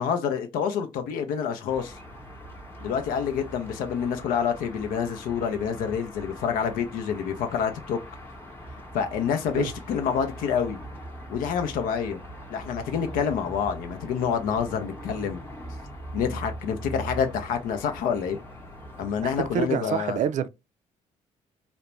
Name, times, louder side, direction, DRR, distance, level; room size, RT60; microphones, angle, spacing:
voice 1, 0.0-1.9 2.8-8.0 8.9-10.8 11.3-12.2 12.5-15.4 16.1-18.4 19.0-20.2, left 7 dB, 80° left, 0.6 m, -27 dB
sound 1, 1.7-19.7, equal, 15° left, 0.8 m, -41 dB
voice 2, 19.2-20.5, right 8 dB, 60° right, 0.4 m, -27 dB
2.4 x 2.1 x 3.0 m
cardioid pair, 80°, 14 cm